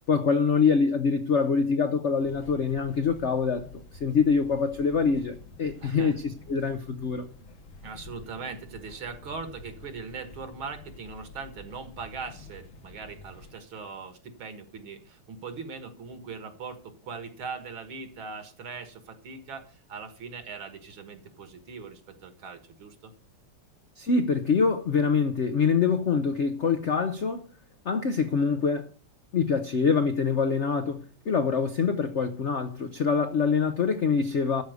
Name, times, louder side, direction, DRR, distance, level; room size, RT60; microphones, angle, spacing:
voice 1, 0.1-7.2 24.0-27.5 27.8-28.9 29.3-34.6, left 5 dB, 85° left, 0.6 m, -25 dB
sound 1, 2.2-13.6, left 3 dB, 70° left, 2.1 m, -49 dB
voice 2, 5.8-6.1 7.8-23.1, right 5 dB, 70° right, 2.4 m, -40 dB
13.0 x 4.9 x 8.1 m
omnidirectional pair, 2.4 m